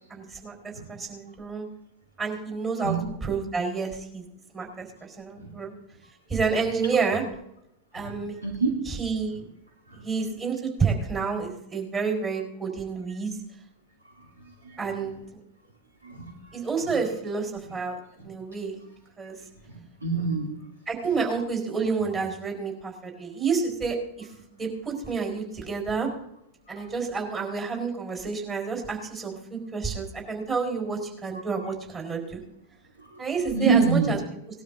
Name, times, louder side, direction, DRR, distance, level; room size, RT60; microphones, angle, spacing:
voice 1, 0.1-1.7 2.2-2.9 3.2-4.2 4.5-5.7 6.3-7.2 7.9-8.4 8.8-9.4 10.0-13.4 14.8-15.2 16.5-18.8 19.2-19.4 20.9-26.1 26.7-32.4 33.2-34.2, right 5 dB, 20° right, 1 dB, 4.6 m, -29 dB
voice 2, 2.8-3.1 5.4-5.5 8.0-8.7 9.9-10.1 14.6-14.8 16.0-16.3 19.7-20.6 26.8-26.9 33.0-33.2 33.5-34.2, right 4 dB, 80° right, -1 dB, 2.8 m, -27 dB
19.5 x 12.5 x 2.7 m, 0.79 s
figure-of-eight pair, 90°, 0 cm